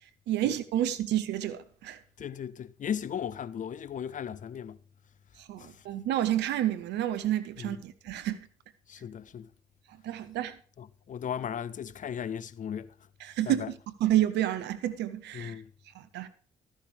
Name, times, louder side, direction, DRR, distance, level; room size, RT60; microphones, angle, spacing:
voice 1, 0.3-2.0 5.5-8.5 10.0-10.6 13.3-13.6 14.0-15.5 15.9-16.3, right 12 dB, 70° right, 0.9 m, -29 dB
voice 2, 2.2-4.8 5.6-5.8 7.6-7.8 8.9-9.5 10.8-12.9 13.4-13.7 15.3-15.7, left 8 dB, 45° left, 0.6 m, -36 dB
13.0 x 11.0 x 3.3 m
hypercardioid pair, 50°, 19 cm